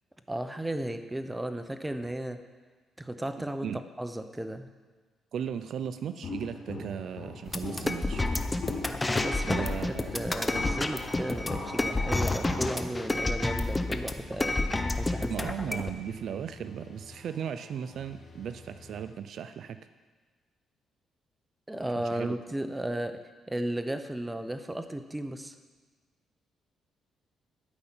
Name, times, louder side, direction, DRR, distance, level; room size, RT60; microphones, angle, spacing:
voice 1, 0.3-2.4 3.0-3.7 4.0-4.7 9.2-15.3 15.6-15.8 21.7-23.2 23.5-25.5, right 1 dB, 10° right, 8 dB, 0.9 m, -35 dB
voice 2, 5.3-8.2 9.4-10.1 15.3-19.8 22.0-22.3, right 8 dB, 65° right, 11 dB, 0.5 m, -36 dB
Walk footsteps, 6.2-12.9, left 3 dB, 60° left, 2.9 m, -39 dB
sound 1, 7.5-15.9, left 2 dB, 15° left, 0.8 m, -30 dB
sound 2, 11.0-19.0, left 3 dB, 40° left, 3.8 m, -51 dB
12.5 x 5.7 x 8.8 m, 1.4 s
cardioid pair, 90°, 0 cm